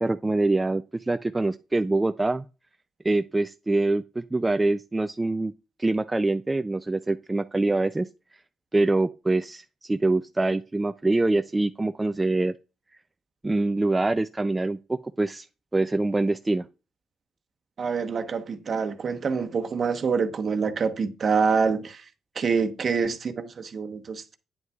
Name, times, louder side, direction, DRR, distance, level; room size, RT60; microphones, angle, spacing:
voice 1, 0.0-2.5 3.0-5.5 5.8-8.1 8.7-12.5 13.4-15.5 15.7-16.7, right 2 dB, 15° right, 0.3 m, -24 dB
voice 2, 17.8-22.0 22.3-24.4, right 5 dB, 45° right, 1.0 m, -26 dB
9.4 x 8.1 x 2.4 m
cardioid pair, 90°, 0 cm